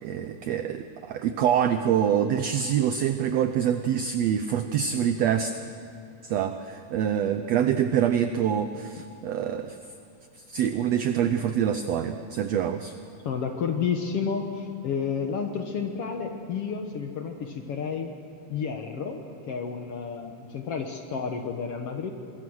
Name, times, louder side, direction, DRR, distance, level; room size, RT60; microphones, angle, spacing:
voice 1, 0.0-5.5 6.2-9.8 10.5-12.9, right 9 dB, 80° right, 9 dB, 1.5 m, -25 dB
voice 2, 13.2-18.2 18.5-22.1, left 6 dB, 60° left, 5 dB, 1.7 m, -31 dB
25.0 x 21.5 x 6.3 m, 2.6 s
omnidirectional pair, 3.8 m